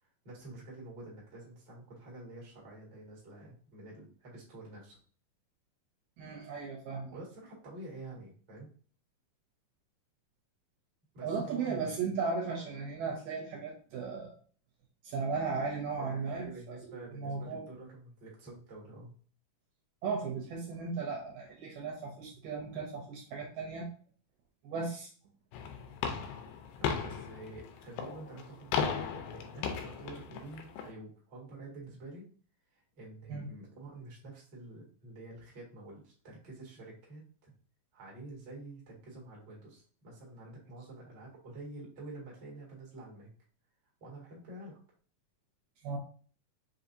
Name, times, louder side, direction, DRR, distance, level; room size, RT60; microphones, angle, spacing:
voice 1, 0.0-5.0 7.1-8.7 11.1-12.0 13.5-13.6 16.0-19.1 26.8-32.3 32.7-37.5 37.9-43.3 44.0-44.8, right 2 dB, 40° right, -3 dB, 1.7 m, -48 dB
voice 2, 6.2-7.1 11.2-14.4 15.0-17.7 20.0-23.9 24.6-25.1 33.3-33.5 45.8-46.0, right 4 dB, 75° right, 0 dB, 2.2 m, -36 dB
sound 1, 25.5-30.9, left 7 dB, 80° left, 2.4 m, -37 dB
5.8 x 2.8 x 2.6 m, 0.43 s
omnidirectional pair, 4.3 m